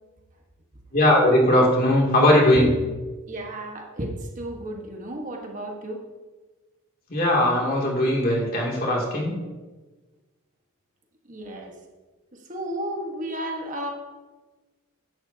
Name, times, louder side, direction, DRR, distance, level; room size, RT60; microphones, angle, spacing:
voice 1, 0.9-2.8 7.1-9.3, left 1 dB, 45° left, -3 dB, 2.8 m, -19 dB
voice 2, 3.3-6.0 11.3-11.7 12.3-13.9, right 1 dB, 35° right, 1 dB, 1.5 m, -33 dB
16.0 x 11.0 x 2.9 m, 1.3 s
head